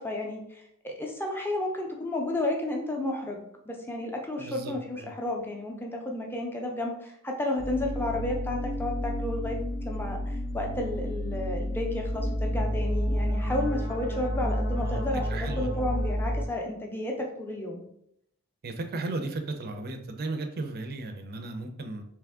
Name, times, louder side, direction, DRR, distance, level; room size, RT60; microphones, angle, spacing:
voice 1, 0.0-9.6 9.8-17.8, left 1 dB, 10° left, 1 dB, 0.5 m, -32 dB
voice 2, 4.4-5.1 14.8-15.8 18.6-22.0, right 2 dB, 45° right, 6 dB, 0.5 m, -35 dB
sound 1, 7.6-16.5, equal, 45° left, 0.7 m, -30 dB
3.4 x 3.1 x 3.5 m, 0.75 s
head